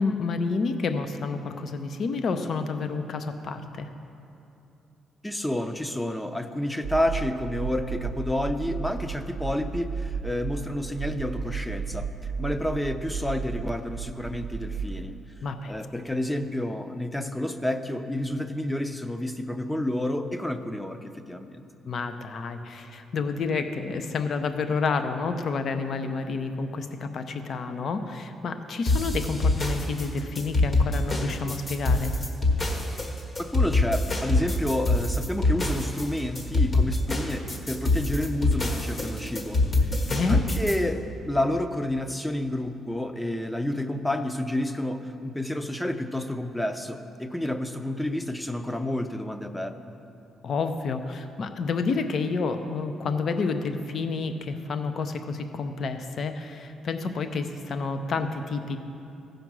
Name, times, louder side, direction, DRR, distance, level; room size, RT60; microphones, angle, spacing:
voice 1, 0.0-3.9 15.4-15.7 21.8-32.1 40.1-40.4 50.4-58.8, left 4 dB, 55° left, 8 dB, 0.7 m, -29 dB
voice 2, 5.2-12.1 12.4-15.2 15.7-21.6 33.4-39.9 40.3-49.8, left 1 dB, 10° left, 8 dB, 0.6 m, -30 dB
sound 1, 6.8-15.1, right 6 dB, 80° right, 0.8 m, -34 dB
sound 2, 28.9-40.8, left 2 dB, 35° left, 1.4 m, -25 dB
15.5 x 5.2 x 6.1 m, 2.8 s
cardioid pair, 100°, 0 cm